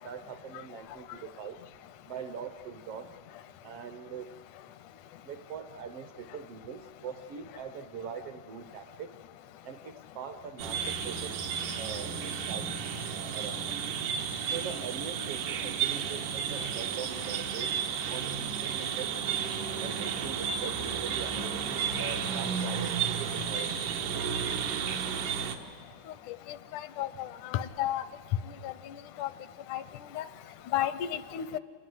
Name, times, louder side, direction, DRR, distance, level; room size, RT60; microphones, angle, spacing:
voice 1, 0.0-1.6 2.1-3.1 3.6-4.3 5.2-9.1 9.6-11.4 11.7-12.7 13.1-13.6 14.5-17.7 18.1-19.1 19.8-23.9, right 7 dB, 70° right, 9 dB, 1.4 m, -42 dB
sound 1, 10.6-25.6, right 7 dB, 90° right, 3.0 m, -32 dB
voice 2, 26.7-28.0 28.6-28.7 29.2-29.3 29.7-29.8 30.2-30.3 30.7-31.5, left 12 dB, 80° left, 15 dB, 2.2 m, -32 dB
28.0 x 19.5 x 7.8 m, 2.1 s
omnidirectional pair, 3.5 m